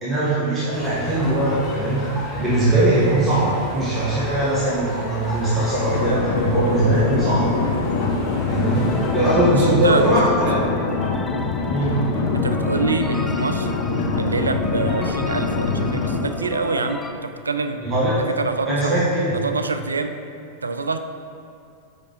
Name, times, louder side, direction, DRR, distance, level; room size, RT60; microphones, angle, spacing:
voice 1, 0.0-2.1 2.4-7.5 8.5-10.6 11.7-11.9 17.8-18.2 18.7-19.3, right 1 dB, 20° right, -9 dB, 1.3 m, -20 dB
sound 1, 0.7-9.3, left 1 dB, 25° left, 1.2 m, -34 dB
sound 2, 5.8-16.2, left 4 dB, 60° left, 0.6 m, -24 dB
sound 3, 8.1-17.1, left 2 dB, 10° left, 0.3 m, -34 dB
voice 2, 9.5-10.3 12.3-13.7 14.2-17.8 18.1-19.0 19.3-20.2 20.6-21.0, right 3 dB, 75° right, 8 dB, 0.3 m, -26 dB
5.2 x 5.1 x 3.9 m, 2.5 s
figure-of-eight pair, 90°, 0 cm